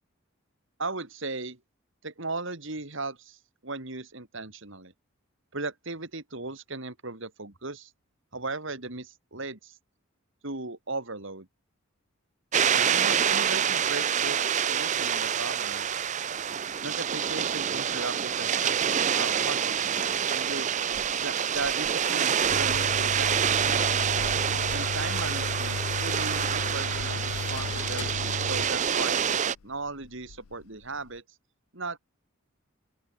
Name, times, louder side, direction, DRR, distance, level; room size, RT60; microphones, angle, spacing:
voice 1, 0.8-1.6 2.0-4.9 5.5-7.9 8.3-9.8 10.4-11.5 12.9-15.9 16.8-20.7 21.2-23.7 24.7-31.2 31.7-32.0, right 3 dB, 60° right, 2.8 m, -37 dB
sound 1, 12.5-29.6, right 8 dB, 35° right, 0.5 m, -27 dB
sound 2, 22.5-31.2, left 4 dB, 80° left, 0.6 m, -35 dB
open air
head